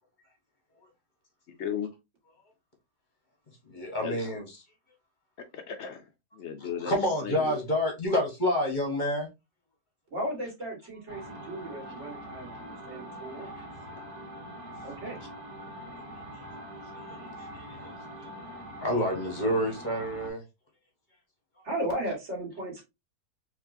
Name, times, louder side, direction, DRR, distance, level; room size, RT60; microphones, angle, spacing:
voice 1, 1.5-1.9 4.0-4.2 5.5-6.1 6.3-7.6, left 7 dB, 70° left, 0.6 m, -35 dB
voice 2, 3.7-4.4 6.8-9.3 13.6-13.7 17.0-17.2 17.5-17.9 18.2-18.3 18.8-20.4, left 1 dB, 30° left, 1.2 m, -28 dB
voice 3, 10.1-13.5 14.8-15.2 21.7-22.8, right 1 dB, 45° right, 1.9 m, -35 dB
sound 1, 11.1-20.3, equal, 60° right, 1.8 m, -43 dB
4.4 x 3.1 x 2.6 m
omnidirectional pair, 1.7 m